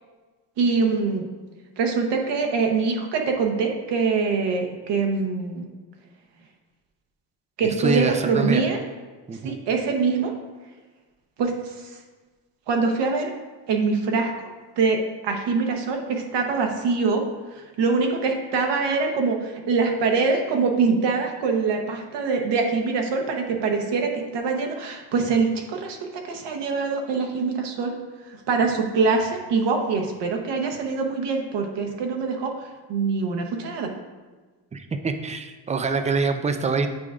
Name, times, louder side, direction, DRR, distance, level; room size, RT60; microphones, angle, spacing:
voice 1, 0.6-1.3 1.8-5.7 7.6-8.8 9.4-10.4 11.4-12.0 12.7-13.3 13.7-14.3 14.8-27.9 28.3-33.9, right 4 dB, 75° right, 3 dB, 1.0 m, -24 dB
voice 2, 7.6-8.6 9.3-9.6 34.7-36.9, right 4 dB, 20° right, 8 dB, 0.3 m, -25 dB
8.8 x 4.7 x 2.4 m, 1.3 s
cardioid pair, 115°, 42 cm